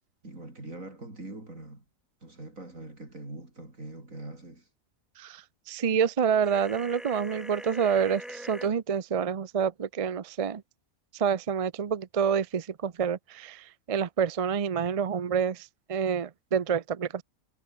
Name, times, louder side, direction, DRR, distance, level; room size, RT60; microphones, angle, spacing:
voice 1, 0.2-1.8 2.2-4.7, right 2 dB, 70° right, 6.3 m, -43 dB
voice 2, 5.2-10.6 11.1-17.2, right 7 dB, 40° right, 0.5 m, -28 dB
sound 1, 6.4-8.7, equal, ahead, 1.2 m, -42 dB
omnidirectional pair, 1.4 m